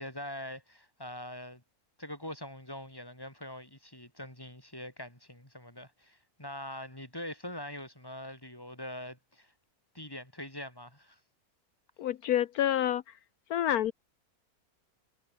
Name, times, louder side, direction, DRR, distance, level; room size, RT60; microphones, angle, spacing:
voice 1, 0.0-1.6 2.0-9.5 9.9-11.2, left 1 dB, 15° left, 5.5 m, -43 dB
voice 2, 12.0-13.0 13.5-13.9, left 11 dB, 75° left, 1.3 m, -28 dB
omnidirectional pair, 1.6 m